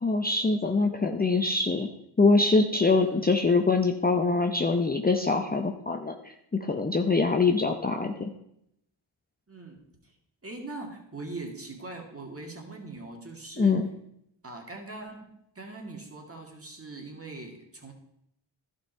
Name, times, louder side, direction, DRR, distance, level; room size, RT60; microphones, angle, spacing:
voice 1, 0.0-1.9 2.2-6.1 6.5-8.3 13.6-13.9, left 3 dB, 20° left, 4 dB, 0.7 m, -24 dB
voice 2, 9.5-9.8 10.0-10.1 10.4-13.8 14.4-15.2 15.6-17.9, right 2 dB, 30° right, 2 dB, 2.2 m, -41 dB
11.5 x 5.5 x 4.5 m, 0.77 s
cardioid pair, 55°, 48 cm